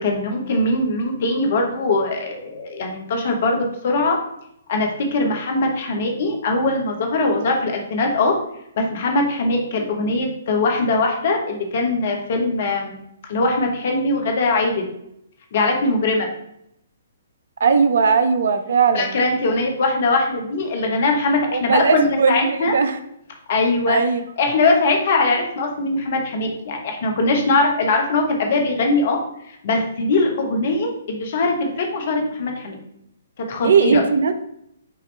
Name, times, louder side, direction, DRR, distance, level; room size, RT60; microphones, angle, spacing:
voice 1, 0.0-4.2 4.7-8.3 8.8-13.0 13.3-14.9 15.5-16.3 18.9-22.7 23.5-24.0 24.4-29.2 29.5-32.8 33.4-34.0, left 2 dB, 50° left, 3 dB, 1.0 m, -21 dB
voice 2, 17.6-19.2 21.5-23.0 23.9-24.2 33.6-34.3, right 5 dB, 60° right, 10 dB, 0.4 m, -18 dB
5.5 x 2.9 x 3.3 m, 0.76 s
figure-of-eight pair, 125°, 0 cm